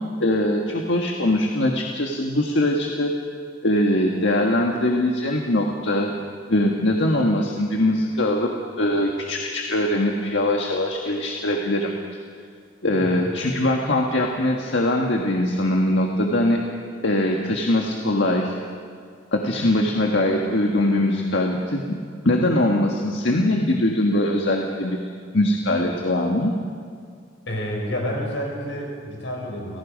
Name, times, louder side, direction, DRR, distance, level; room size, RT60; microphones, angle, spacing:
voice 1, 0.2-3.1 3.6-6.1 6.5-8.5 8.8-11.9 12.8-16.6 17.0-18.6 19.3-22.0 22.2-25.0 25.3-26.5, left 1 dB, 70° left, 1 dB, 1.6 m, -22 dB
voice 2, 27.5-29.8, equal, 90° left, 0 dB, 5.5 m, -29 dB
29.5 x 17.0 x 5.2 m, 2.1 s
head